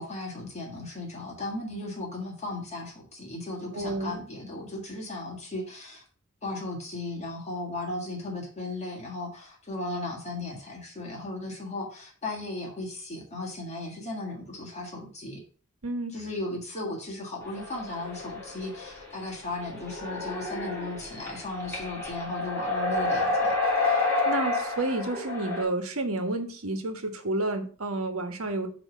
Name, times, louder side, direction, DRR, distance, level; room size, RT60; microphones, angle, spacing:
voice 1, 0.0-6.0 6.4-15.4 16.1-23.5, left 2 dB, 30° left, 0 dB, 1.7 m, -36 dB
voice 2, 3.7-4.2 15.8-16.1 23.9-28.7, right 2 dB, 85° right, 6 dB, 1.4 m, -30 dB
sound 1, 17.4-19.2 19.6-25.6, left 2 dB, 10° left, 3.0 m, -29 dB
8.5 x 3.2 x 6.1 m, 0.41 s
head